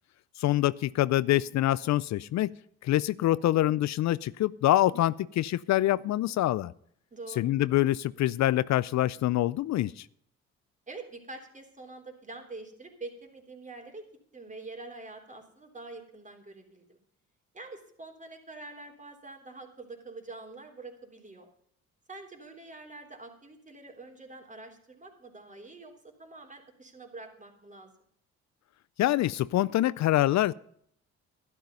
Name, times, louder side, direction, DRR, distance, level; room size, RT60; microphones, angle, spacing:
voice 1, 0.4-2.5 2.8-6.7 7.4-10.1 29.0-30.5, left 14 dB, 65° left, 19 dB, 0.5 m, -25 dB
voice 2, 7.1-7.5 10.9-14.1 14.3-17.0 17.5-21.5 22.1-25.9 26.2-27.9, right 3 dB, 25° right, 3 dB, 3.5 m, -45 dB
12.0 x 12.0 x 5.4 m, 0.66 s
cardioid pair, 90°, 30 cm